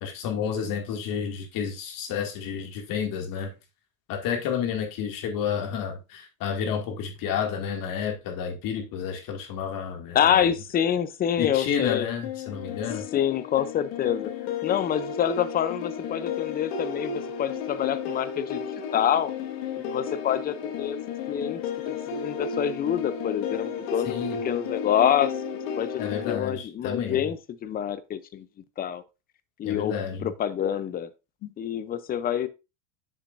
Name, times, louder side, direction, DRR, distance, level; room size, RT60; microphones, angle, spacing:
voice 1, 0.0-3.5 4.1-10.5 11.4-13.0 24.0-24.4 26.0-27.3 29.6-30.3 31.4-31.5, left 7 dB, 50° left, 2.2 m, -30 dB
voice 2, 10.1-12.1 13.1-14.3 14.6-19.3 19.8-21.0 21.3-21.6 21.9-24.1 24.4-25.3 25.8-26.0 26.3-28.5 28.8-29.0 29.6-29.9 30.2-31.1 31.6-32.5, left 9 dB, 20° left, 0.5 m, -26 dB
sound 1, 12.2-26.3, left 6 dB, 70° left, 1.5 m, -33 dB
7.2 x 6.9 x 2.5 m
supercardioid pair, 130°, 43 cm